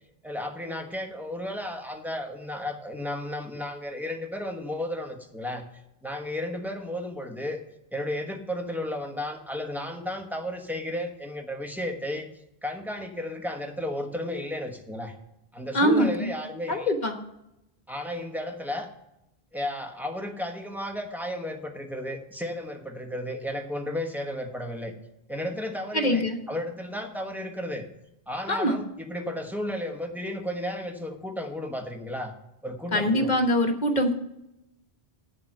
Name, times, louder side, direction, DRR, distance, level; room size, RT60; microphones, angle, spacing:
voice 1, 0.2-5.7 6.0-7.6 7.9-12.3 12.6-15.1 15.5-16.9 17.9-18.9 19.5-24.9 25.3-27.8 28.3-32.3 32.6-33.3, left 1 dB, ahead, 3 dB, 1.2 m, -33 dB
voice 2, 15.7-16.3 16.7-17.1 25.9-26.4 28.5-28.8 32.9-34.1, equal, 45° left, 5 dB, 1.3 m, -23 dB
9.0 x 6.9 x 7.8 m, 0.86 s
omnidirectional pair, 1.1 m